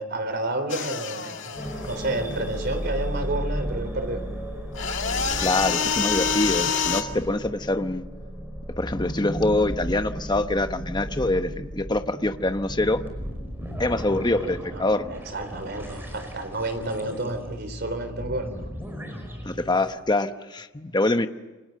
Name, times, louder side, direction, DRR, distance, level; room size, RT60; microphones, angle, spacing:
voice 1, 0.0-4.2 14.4-14.8 15.1-18.7, right 2 dB, 55° right, 8 dB, 3.8 m, -30 dB
sound 1, 0.7-2.7 4.7-7.0, left 6 dB, 65° left, 2.3 m, -27 dB
sound 2, 1.5-19.9, equal, 10° right, 5.5 m, -35 dB
voice 2, 5.4-8.0 8.8-13.0 13.8-15.1 19.4-21.3, left 2 dB, 20° left, 9 dB, 1.0 m, -25 dB
29.0 x 25.5 x 6.6 m, 1.2 s
head